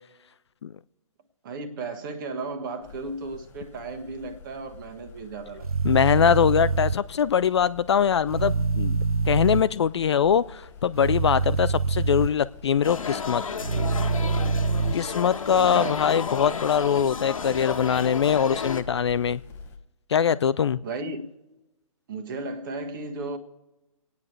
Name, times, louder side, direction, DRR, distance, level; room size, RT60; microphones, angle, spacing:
voice 1, 1.4-6.0 15.5-16.0 20.8-21.3 22.1-23.4, right 3 dB, 35° right, 1.4 m, -35 dB
sound 1, 2.8-19.8, left 4 dB, 10° left, 0.8 m, -46 dB
sound 2, 5.6-6.9 8.3-9.6 11.0-12.3 13.6-14.9, right 4 dB, 80° right, 0.6 m, -25 dB
voice 2, 5.8-9.0 9.3-13.4 14.9-19.4 20.1-20.8, left 8 dB, 50° left, 0.4 m, -22 dB
sound 3, 12.8-18.8, left 5 dB, 65° left, 1.1 m, -32 dB
26.5 x 9.4 x 3.2 m
figure-of-eight pair, 130°, 18 cm